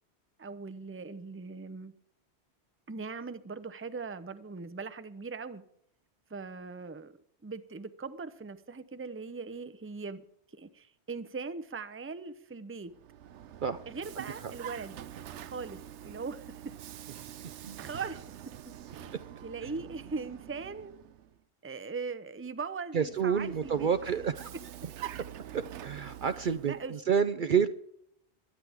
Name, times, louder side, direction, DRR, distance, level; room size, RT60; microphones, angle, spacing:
voice 1, 0.4-1.9 2.9-5.6 6.3-7.1 7.4-10.2 10.5-12.9 13.9-15.0 15.4-16.7 17.8-18.2 18.7-20.9 21.6-23.9 26.4-26.9, right 4 dB, 15° right, 12 dB, 0.6 m, -40 dB
Vehicle, 12.9-21.4 23.0-26.9, right 11 dB, 85° right, 1.0 m, -46 dB
voice 2, 22.9-24.5 25.8-27.7, right 7 dB, 55° right, 11 dB, 0.7 m, -28 dB
22.0 x 9.9 x 3.5 m, 0.70 s
omnidirectional pair, 1.1 m